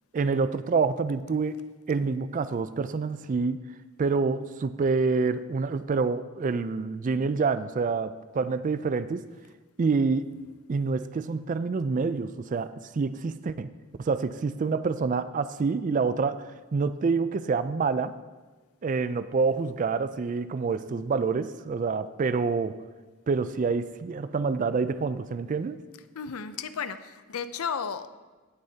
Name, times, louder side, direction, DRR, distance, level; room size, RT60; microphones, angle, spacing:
voice 1, 0.1-3.6 4.0-9.3 9.8-10.3 10.7-13.7 14.0-18.2 18.8-22.8 23.3-25.8, right 4 dB, 35° right, 13 dB, 0.3 m, -27 dB
voice 2, 26.2-28.1, left 6 dB, 75° left, 12 dB, 0.5 m, -33 dB
17.0 x 6.7 x 2.8 m, 1.3 s
head